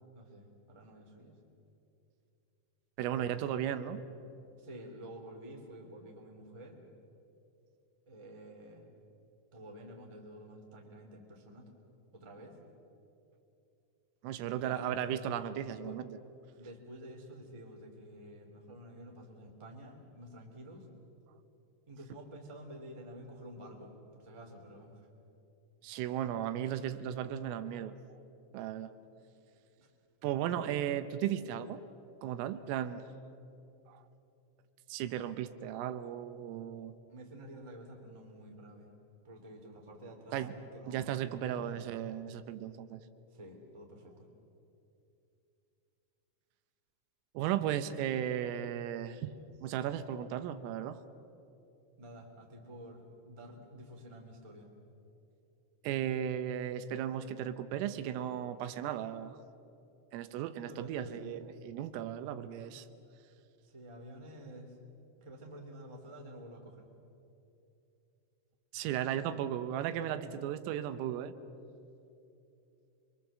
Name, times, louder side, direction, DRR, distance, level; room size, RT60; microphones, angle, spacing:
voice 1, 0.1-1.3 3.1-3.4 4.6-6.8 8.0-8.8 9.5-11.7 12.1-12.6 14.4-15.2 15.6-16.0 16.6-20.8 21.9-25.1 29.8-29.9 37.1-38.9 39.2-41.8 43.3-44.3 52.0-54.7 60.6-61.4 63.6-64.7 65.1-66.9, right 1 dB, 10° right, 1 dB, 1.4 m, -50 dB
voice 2, 3.0-4.0 14.2-16.2 25.8-27.9 28.5-28.9 30.2-31.8 32.2-33.1 33.9-34.0 34.9-37.0 40.3-40.6 40.9-43.0 47.3-49.3 49.6-51.0 55.8-59.4 60.1-62.9 68.7-71.3, right 10 dB, 80° right, 11 dB, 3.5 m, -35 dB
26.5 x 23.0 x 7.5 m, 2.8 s
omnidirectional pair, 5.9 m